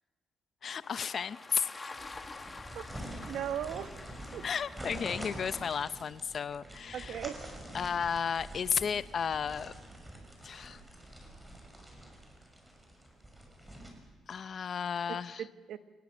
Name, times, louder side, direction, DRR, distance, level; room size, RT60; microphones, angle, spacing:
voice 1, 0.6-1.9 4.4-7.2 7.7-9.7 10.4-10.8 14.3-15.5, left 7 dB, 50° left, 15 dB, 0.7 m, -33 dB
sound 1, 0.8-5.8, left 3 dB, 25° left, 2.0 m, -48 dB
sound 2, 1.9-13.9, right 1 dB, 10° right, 6.6 m, -46 dB
voice 2, 3.3-3.9 4.3-4.4 6.9-7.4 15.1-15.8, right 10 dB, 75° right, 10 dB, 1.2 m, -37 dB
28.5 x 20.0 x 6.4 m, 1.3 s
cardioid pair, 90°, 0 cm